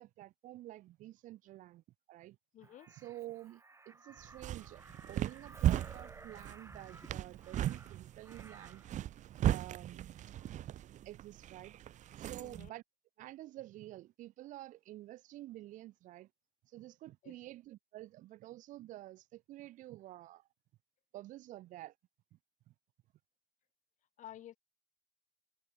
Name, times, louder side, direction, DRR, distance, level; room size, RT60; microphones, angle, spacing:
voice 1, 0.0-2.4 2.9-4.8 5.1-8.8 9.4-10.3 11.0-11.7 12.2-12.8 13.2-16.3 16.6-20.5 21.1-21.9 22.3-22.4 22.7-22.8, right 15 dB, 90° right, 2.3 m, -50 dB
voice 2, 2.5-2.9 12.4-12.7 17.2-17.3 24.2-24.6, left 12 dB, 75° left, 7.5 m, -51 dB
Crow, 2.6-9.0 10.4-10.6, right 3 dB, 20° right, 4.4 m, -56 dB
sound 1, 4.2-12.7, right 12 dB, 70° right, 1.3 m, -37 dB
cardioid pair, 95°, 13 cm